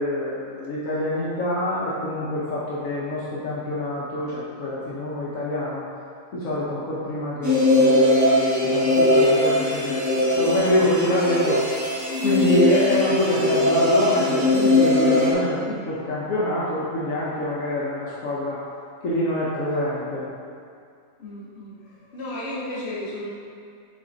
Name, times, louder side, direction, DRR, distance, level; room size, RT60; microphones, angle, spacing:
voice 1, 0.0-5.8 6.3-11.6 12.2-18.6 19.0-20.3, left 1 dB, 70° left, -8 dB, 1.3 m, -26 dB
sound 1, 7.4-15.3, left 1 dB, 15° right, 0.7 m, -20 dB
voice 2, 21.2-21.8 22.1-23.3, left 1 dB, 50° left, -6 dB, 1.4 m, -33 dB
6.8 x 3.7 x 3.9 m, 2.3 s
omnidirectional pair, 1.5 m